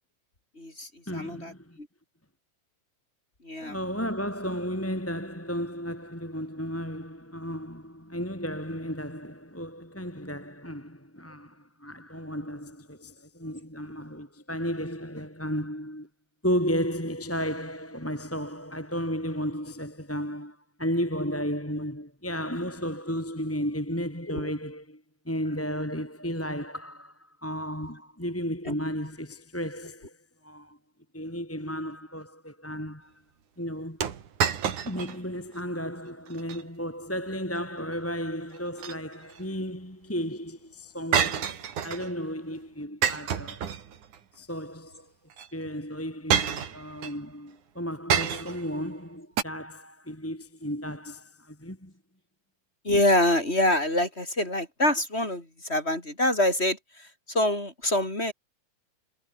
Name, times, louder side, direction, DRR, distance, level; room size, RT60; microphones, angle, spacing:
voice 1, 0.6-1.5 1.8-1.9 3.4-3.8 24.3-24.5 28.7-28.8 52.8-58.3, left 1 dB, 20° left, 4.8 m, -26 dB
voice 2, 1.1-1.8 3.6-16.1 16.4-30.2 30.4-30.8 31.1-33.1 33.6-34.1 34.8-41.5 41.8-43.7 44.3-45.1 45.5-51.9, equal, 5° left, 3.4 m, -34 dB
sound 1, 34.0-35.2 35.6-35.7 36.3-36.6 38.5-39.4 41.1-42.1 43.0-44.2 45.3-45.5 46.3-47.2 48.1-48.7 49.4-49.5, right 8 dB, 85° right, 3.9 m, -28 dB
omnidirectional pair, 3.4 m